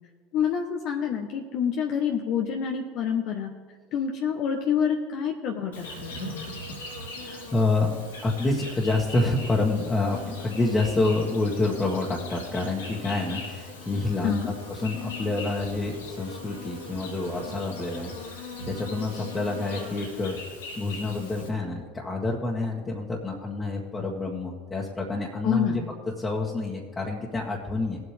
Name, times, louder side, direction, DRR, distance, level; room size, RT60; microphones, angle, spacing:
voice 1, 0.3-3.5 3.9-6.1 14.2-14.5 25.4-25.9, left 8 dB, 55° left, 2 dB, 1.1 m, -27 dB
Insect, 5.7-21.5, left 2 dB, 85° left, 3.3 m, -40 dB
voice 2, 7.2-7.9 8.2-20.4 20.8-25.8 26.2-28.0, left 2 dB, 20° left, -4 dB, 1.8 m, -28 dB
20.0 x 8.2 x 3.5 m, 1.5 s
hypercardioid pair, 80°, 0 cm